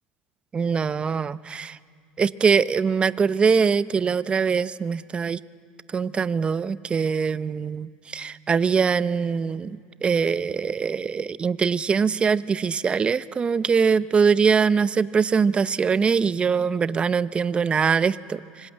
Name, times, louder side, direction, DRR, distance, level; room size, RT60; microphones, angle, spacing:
voice 1, 0.5-1.8 2.2-5.4 5.9-18.7, right 6 dB, 25° right, 16 dB, 0.7 m, -23 dB
24.5 x 24.0 x 9.0 m, 2.2 s
supercardioid pair, 110°, 4 cm